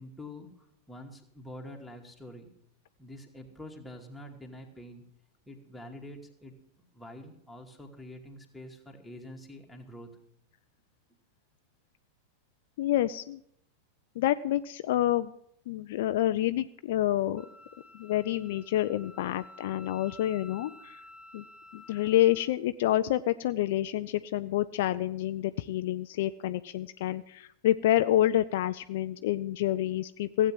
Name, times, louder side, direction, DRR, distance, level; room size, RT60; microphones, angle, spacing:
voice 1, 0.0-2.5 3.0-5.1 5.5-6.6 6.9-10.1, left 1 dB, ahead, 0 dB, 2.4 m, -46 dB
voice 2, 12.8-13.4 14.2-15.3 15.7-17.5 17.9-21.0 21.3-21.4 21.7-30.5, left 13 dB, 55° left, 12 dB, 0.4 m, -28 dB
Wind instrument woodwind instrument, 17.4-22.5, left 2 dB, 25° right, 2.6 m, -52 dB
16.0 x 8.5 x 7.5 m, 0.70 s
figure-of-eight pair, 90°, 0 cm